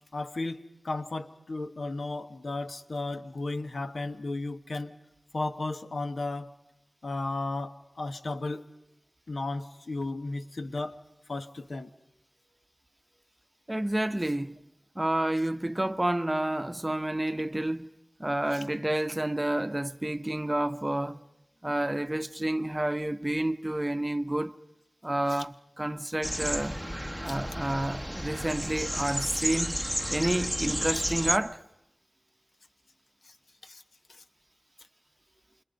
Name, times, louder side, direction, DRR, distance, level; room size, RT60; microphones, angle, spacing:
voice 1, 0.1-4.9 5.3-6.5 7.0-8.7 9.3-11.0 11.3-11.9 18.5-18.6 25.3-25.4 27.3-27.4 33.2-33.3 33.6-33.8 34.1-34.2, left 2 dB, 80° left, 1.1 m, -34 dB
voice 2, 13.7-14.6 14.9-17.9 18.2-21.2 21.6-24.5 25.0-26.8 27.2-29.8 30.1-31.6, right 1 dB, 25° right, 0.8 m, -29 dB
sound 1, 26.2-31.4, equal, 5° left, 1.0 m, -32 dB
29.5 x 26.0 x 5.2 m
wide cardioid pair, 50°, 0 cm